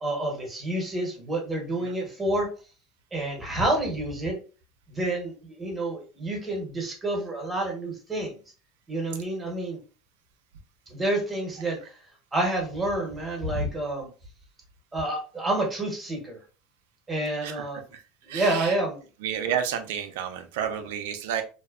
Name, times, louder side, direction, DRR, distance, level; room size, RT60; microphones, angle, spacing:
voice 1, 0.0-2.5 3.1-4.4 4.9-8.4 8.9-9.8 10.9-11.8 12.3-14.1 14.9-16.4 17.1-17.8 18.2-19.0, right 1 dB, 15° right, 0 dB, 1.0 m, -28 dB
voice 2, 17.4-18.8 19.2-21.4, right 8 dB, 85° right, 8 dB, 0.4 m, -31 dB
2.6 x 2.1 x 2.4 m, 0.36 s
supercardioid pair, 130°, 0 cm